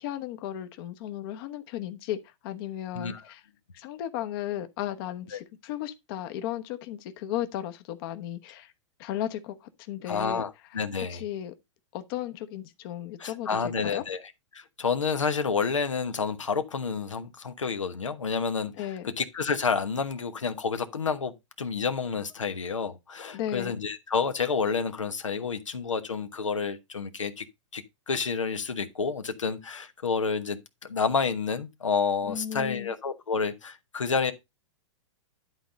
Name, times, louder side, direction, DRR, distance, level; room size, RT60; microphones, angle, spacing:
voice 1, 0.0-3.4 3.7-8.7 9.0-10.4 11.1-11.5 11.9-14.0 18.8-19.1 23.3-23.7 32.2-32.9, left 12 dB, 50° left, 1.1 m, -35 dB
voice 2, 10.1-11.2 13.2-14.2 14.5-18.9 19.2-27.4 27.7-34.3, left 5 dB, 90° left, 1.1 m, -29 dB
11.0 x 4.0 x 5.1 m
hypercardioid pair, 115°, 16 cm